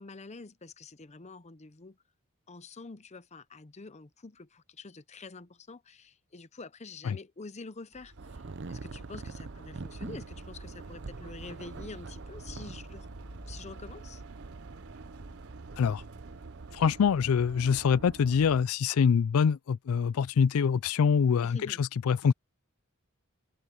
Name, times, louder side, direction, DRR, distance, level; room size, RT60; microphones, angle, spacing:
voice 1, 0.0-2.0 2.5-8.1 8.7-13.1 13.5-14.2 21.4-21.8, left 3 dB, 30° left, 0.7 m, -47 dB
sound 1, 7.9-17.9, right 1 dB, 75° right, 4.0 m, -52 dB
sound 2, 8.2-18.6, right 3 dB, 55° right, 0.7 m, -44 dB
voice 2, 16.7-22.3, left 6 dB, 75° left, 0.4 m, -25 dB
head